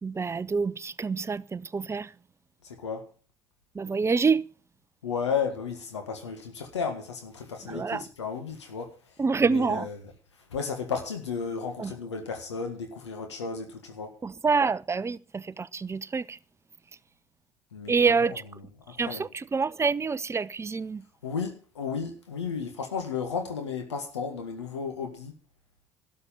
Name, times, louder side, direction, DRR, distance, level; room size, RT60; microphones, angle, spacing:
voice 1, 0.0-2.1 3.7-4.4 7.7-8.0 9.2-9.9 11.8-11.9 14.2-16.4 17.9-18.4 19.0-21.0, right 4 dB, 20° right, 0.6 m, -27 dB
voice 2, 2.6-3.1 5.0-10.0 10.3-14.2 17.7-18.7 19.0-19.2 21.2-25.4, left 6 dB, 90° left, 1.7 m, -34 dB
12.5 x 6.6 x 9.1 m
hypercardioid pair, 60°, 14 cm